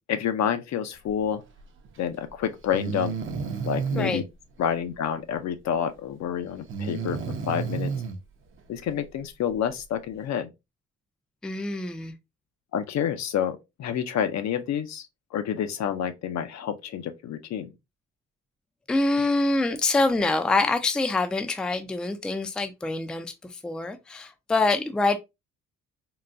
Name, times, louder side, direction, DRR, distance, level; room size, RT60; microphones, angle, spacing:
voice 1, 0.0-1.4 2.0-3.1 3.6-4.2 4.6-7.2 7.5-7.9 8.7-10.5 12.7-17.7, left 9 dB, 65° left, 0.6 m, -28 dB
Breathing, 1.8-1.9 2.7-4.2 6.7-8.2, right 5 dB, 40° right, 0.6 m, -31 dB
voice 2, 11.4-12.1 18.9-25.2, left 2 dB, 5° left, 0.3 m, -25 dB
3.8 x 2.2 x 2.5 m
cardioid pair, 90°, 30 cm